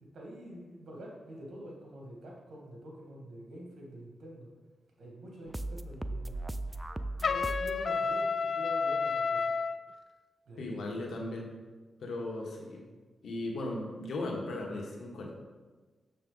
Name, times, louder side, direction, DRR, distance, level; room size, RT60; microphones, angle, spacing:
voice 1, 0.0-4.5 5.0-6.3 7.2-9.5 10.5-11.0, right 1 dB, 80° right, -1 dB, 1.9 m, -47 dB
sound 1, 5.5-7.9, right 2 dB, 15° right, 0.4 m, -37 dB
Trumpet, 7.2-9.8, left 5 dB, 55° left, 0.4 m, -30 dB
voice 2, 10.6-11.5 12.0-12.8 13.2-15.4, left 2 dB, 85° left, 0 dB, 1.4 m, -37 dB
7.0 x 6.6 x 3.9 m, 1.3 s
cardioid pair, 80°, 0 cm